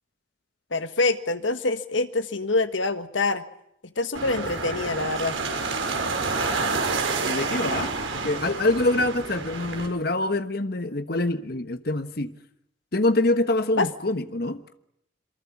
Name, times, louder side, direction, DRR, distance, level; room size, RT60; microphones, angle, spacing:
voice 1, 0.7-3.4 3.8-5.4 13.8-13.9, left 3 dB, 75° left, 10 dB, 1.5 m, -25 dB
sound 1, 4.1-9.9, right 3 dB, 85° right, 5.2 m, -28 dB
voice 2, 7.3-12.3 12.9-14.6, left 2 dB, 50° left, 10 dB, 1.2 m, -25 dB
27.5 x 23.0 x 7.3 m, 0.75 s
head